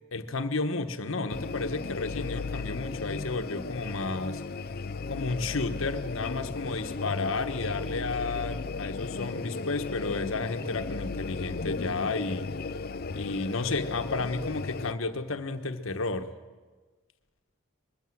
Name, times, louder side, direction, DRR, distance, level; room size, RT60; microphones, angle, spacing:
voice 1, 0.1-4.4 5.1-12.5 13.1-16.3, left 3 dB, 85° left, 8 dB, 1.2 m, -32 dB
sound 1, 1.3-14.9, left 4 dB, 50° left, 0.6 m, -35 dB
21.5 x 15.5 x 7.8 m, 1.4 s
head